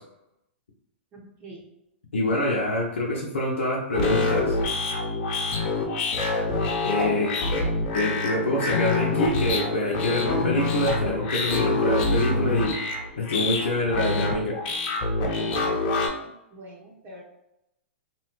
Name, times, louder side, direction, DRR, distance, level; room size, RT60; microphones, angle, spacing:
voice 1, 1.1-1.6 7.1-7.6 12.5-12.6 15.3-15.8 16.2-17.2, right 2 dB, 30° right, -3 dB, 0.7 m, -44 dB
voice 2, 2.1-4.6 6.8-7.3 7.9-12.7 13.2-14.5, left 1 dB, 85° left, -3 dB, 0.6 m, -26 dB
sound 1, 3.9-16.1, left 2 dB, 45° left, 0.7 m, -26 dB
2.8 x 2.1 x 2.9 m, 0.86 s
hypercardioid pair, 120°, 7 cm